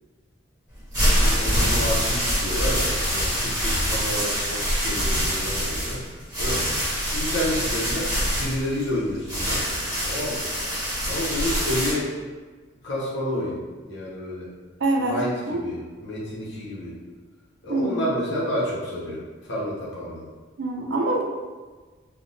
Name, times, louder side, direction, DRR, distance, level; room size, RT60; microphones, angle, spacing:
sound 1, 0.7-11.9, equal, 15° right, 1.3 m, -25 dB
voice 1, 1.2-6.6 7.1-9.7 10.0-10.5 11.1-12.1 12.8-13.6 13.9-14.5 15.0-16.9 17.6-20.2, left 1 dB, 60° left, -7 dB, 1.0 m, -30 dB
voice 2, 14.8-15.2 15.5-15.6 17.7-18.0 20.6-21.2, right 2 dB, 60° right, 0 dB, 0.5 m, -24 dB
3.5 x 2.3 x 2.6 m, 1.4 s
head